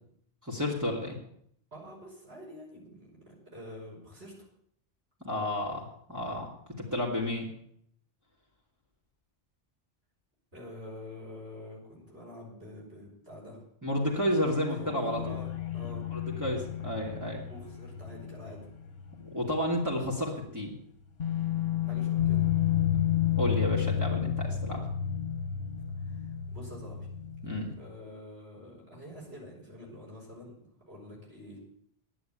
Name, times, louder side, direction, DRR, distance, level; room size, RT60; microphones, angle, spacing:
voice 1, 0.4-1.2 5.2-6.5 6.8-7.5 13.8-15.4 16.4-17.4 19.3-20.7 23.4-24.8 27.4-27.7, left 1 dB, 15° right, -3 dB, 2.8 m, -31 dB
voice 2, 1.7-4.5 10.5-13.6 14.4-16.1 17.5-18.7 21.8-22.5 26.0-27.1 27.8-31.6, left 1 dB, 85° right, -4 dB, 5.9 m, -47 dB
sound 1, 14.2-19.6 19.9-20.0 21.2-27.8, left 10 dB, 75° left, 1.6 m, -31 dB
11.0 x 9.0 x 9.1 m, 0.67 s
omnidirectional pair, 1.0 m